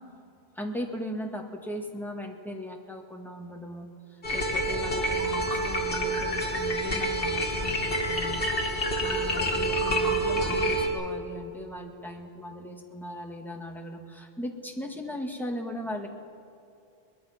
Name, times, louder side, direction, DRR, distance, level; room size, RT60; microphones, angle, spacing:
voice 1, 0.5-8.4 9.0-16.1, equal, ahead, 1 dB, 1.9 m, -38 dB
sound 1, 4.2-10.9, right 1 dB, 60° left, 2.5 m, -27 dB
23.5 x 20.0 x 6.0 m, 2.6 s
omnidirectional pair, 1.1 m